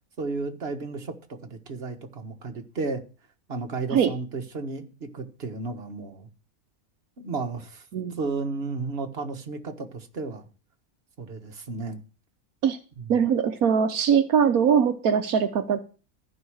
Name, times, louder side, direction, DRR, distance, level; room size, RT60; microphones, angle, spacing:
voice 1, 0.2-3.0 3.5-6.3 7.2-7.8 8.2-10.5 11.2-12.0 13.0-13.2, right 3 dB, 45° right, 1.7 m, -33 dB
voice 2, 13.1-15.8, right 7 dB, 80° right, 1.4 m, -21 dB
14.5 x 5.6 x 6.3 m
omnidirectional pair, 1.5 m